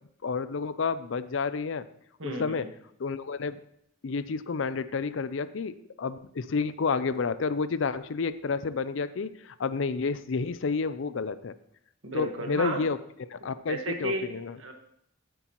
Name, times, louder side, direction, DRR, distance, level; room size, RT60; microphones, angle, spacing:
voice 1, 0.2-1.9 2.2-2.7 3.0-3.6 4.0-11.5 12.1-13.0 13.3-14.6, left 5 dB, 65° left, 14 dB, 0.5 m, -30 dB
voice 2, 2.2-2.7 12.0-12.8 13.4-14.3 14.6-14.7, right 1 dB, 75° right, 3 dB, 1.5 m, -33 dB
13.0 x 8.3 x 3.0 m, 0.75 s
head